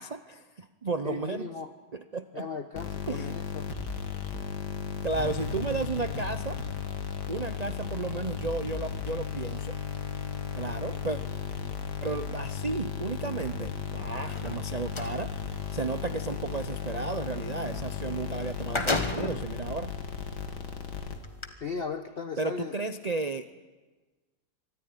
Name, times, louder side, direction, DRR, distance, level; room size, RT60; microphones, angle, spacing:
voice 1, 0.0-1.5 1.9-2.5 3.1-3.4 5.0-6.6 7.3-9.8 10.5-11.2 12.0-15.3 15.7-19.9 22.4-23.5, right 3 dB, 75° right, 10 dB, 0.3 m, -33 dB
voice 2, 1.0-1.7 2.3-3.7 21.6-22.7, left 5 dB, 40° left, 6 dB, 1.1 m, -37 dB
sound 1, 2.8-21.5, left 6 dB, 75° left, 2.3 m, -35 dB
sound 2, 14.2-15.2 18.0-18.1 18.4-19.5 20.2-20.3 21.2-21.5, left 2 dB, 20° left, 1.1 m, -31 dB
24.0 x 14.0 x 9.6 m, 1.3 s
omnidirectional pair, 1.8 m